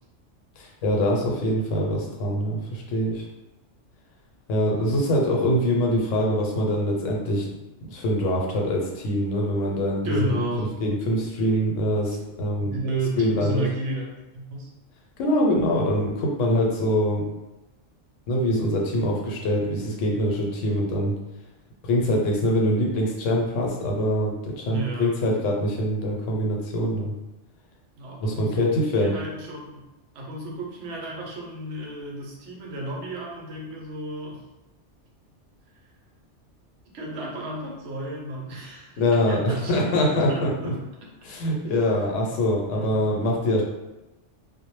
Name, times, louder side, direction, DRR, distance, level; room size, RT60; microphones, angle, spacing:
voice 1, 0.6-3.2 4.5-7.5 7.9-12.7 13.2-13.6 15.2-17.2 18.3-21.1 21.8-27.1 28.2-29.2 39.0-40.7 41.2-43.6, equal, 85° left, -1 dB, 0.9 m, -24 dB
voice 2, 10.0-10.7 12.6-14.1 14.3-14.7 24.6-25.2 28.0-29.8 30.1-34.4 36.9-41.4 41.7-41.8 42.7-43.0, right 1 dB, 75° right, -1 dB, 0.9 m, -33 dB
2.0 x 2.0 x 3.0 m, 1.0 s
omnidirectional pair, 1.3 m